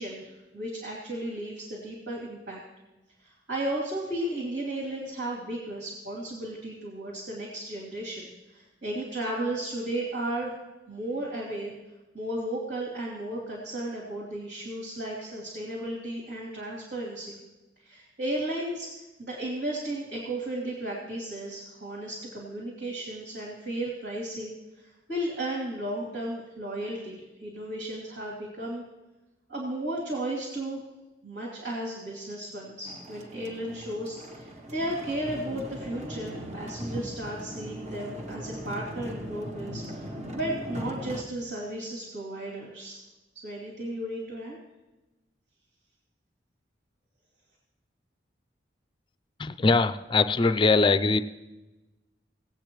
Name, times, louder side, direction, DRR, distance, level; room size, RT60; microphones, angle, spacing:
voice 1, 0.0-2.6 3.2-10.5 10.9-11.7 12.1-17.3 17.9-18.9 19.2-24.5 25.1-28.8 29.5-30.8 31.2-40.1 40.3-43.0 43.4-44.6, right 1 dB, 80° right, -5 dB, 2.8 m, -34 dB
sound 1, 32.8-41.2, equal, 40° right, 1.0 m, -39 dB
voice 2, 49.4-51.2, left 3 dB, 25° left, 11 dB, 0.4 m, -22 dB
19.5 x 8.4 x 3.1 m, 1.1 s
head